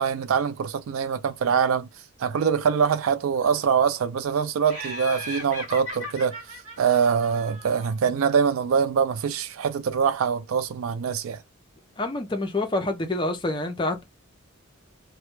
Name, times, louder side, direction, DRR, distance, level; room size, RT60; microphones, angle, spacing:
voice 1, 0.0-1.9 2.2-6.4 6.8-11.4, right 6 dB, 80° right, 0.3 m, -24 dB
Laughter, 4.7-8.0, left 1 dB, 35° right, 1.1 m, -37 dB
voice 2, 12.0-14.0, left 2 dB, 20° left, 0.4 m, -27 dB
2.1 x 2.1 x 3.0 m
head